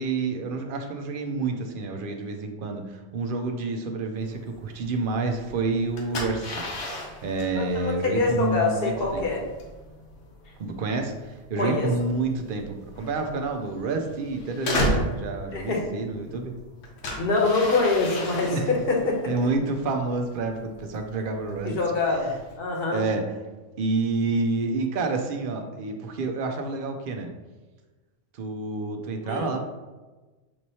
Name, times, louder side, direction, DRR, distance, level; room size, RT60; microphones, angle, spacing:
voice 1, 0.0-6.6 7.2-9.2 10.6-16.5 18.5-18.7 19.3-21.7 22.9-23.2 23.8-27.3 28.3-29.6, right 3 dB, 55° right, 4 dB, 0.7 m, -28 dB
sound 1, 4.2-22.6, left 1 dB, 80° left, 1.2 m, -35 dB
voice 2, 7.6-9.4 11.6-11.9 15.5-15.8 17.2-19.2 21.7-23.0 29.2-29.5, left 3 dB, 55° left, 0 dB, 1.0 m, -25 dB
6.0 x 3.1 x 2.8 m, 1.2 s
omnidirectional pair, 1.2 m